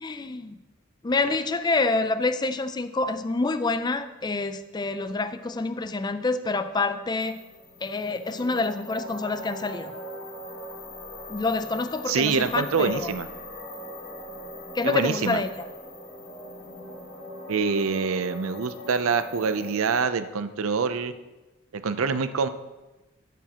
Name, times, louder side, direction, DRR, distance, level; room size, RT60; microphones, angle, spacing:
voice 1, 0.0-0.6 1.0-7.4 7.8-9.9 11.3-13.1 14.7-15.6, left 3 dB, 20° left, 11 dB, 0.4 m, -27 dB
sound 1, 7.2-20.0, equal, 35° left, 1.5 m, -41 dB
voice 2, 12.1-13.3 14.8-15.4 17.5-21.1 21.7-22.5, right 5 dB, 75° right, 11 dB, 0.5 m, -25 dB
12.5 x 8.2 x 2.9 m, 1.1 s
head